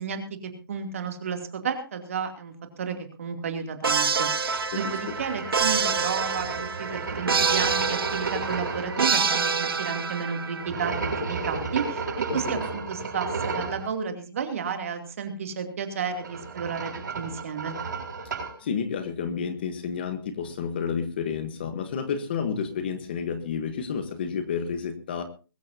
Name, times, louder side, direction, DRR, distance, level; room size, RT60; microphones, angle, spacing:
voice 1, 0.0-17.7, right 6 dB, 35° right, 5 dB, 2.7 m, -32 dB
sound 1, 3.8-10.7, right 5 dB, 80° right, 1.8 m, -26 dB
sound 2, 4.4-9.0 10.6-13.9 16.0-18.6, right 4 dB, 55° right, 7.2 m, -33 dB
voice 2, 12.3-12.6 18.6-25.2, left 6 dB, 25° left, 10 dB, 1.2 m, -30 dB
22.0 x 13.5 x 2.8 m, 0.33 s
hypercardioid pair, 175°, 12 cm